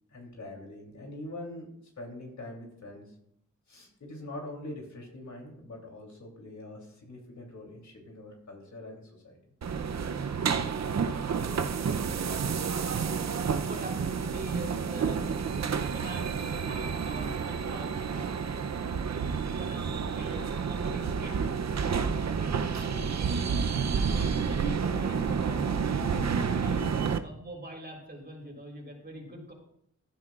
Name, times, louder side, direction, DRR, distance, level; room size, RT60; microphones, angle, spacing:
voice 1, 0.1-1.7 2.0-3.1 3.7-9.4, left 1 dB, 70° left, 0 dB, 3.1 m, -43 dB
sound 1, 9.6-27.2, right 6 dB, 65° right, 0.6 m, -30 dB
voice 2, 10.7-17.9 18.9-21.4 21.9-29.5, right 1 dB, 35° right, -1 dB, 3.8 m, -45 dB
15.0 x 9.9 x 2.4 m, 0.71 s
wide cardioid pair, 70°, 30 cm